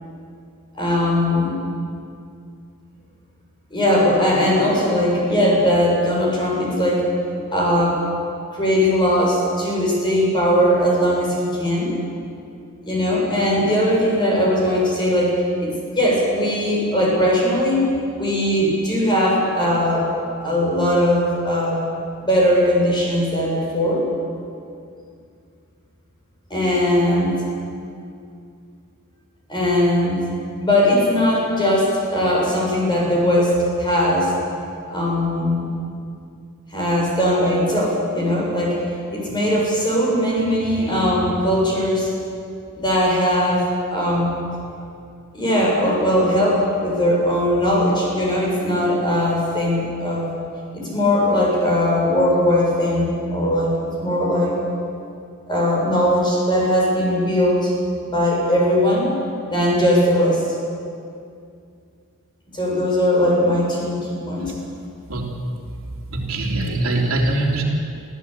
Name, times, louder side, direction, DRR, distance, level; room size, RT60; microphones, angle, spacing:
voice 1, 0.7-1.6 3.7-7.0 7.5-8.1 8.5-11.9 12.8-17.8 18.2-20.1 20.4-21.8 22.2-24.0 26.5-27.3 29.5-30.2 30.6-33.5 33.8-34.3 34.9-35.7 36.7-38.7 39.1-42.1 42.7-44.3 45.3-50.3 50.7-54.5 55.5-57.7 58.0-59.2 59.5-60.4 62.5-64.5, equal, 20° left, -4 dB, 7.4 m, -19 dB
voice 2, 66.1-67.6, right 2 dB, 65° right, -1 dB, 3.4 m, -22 dB
25.5 x 15.5 x 8.8 m, 2.4 s
head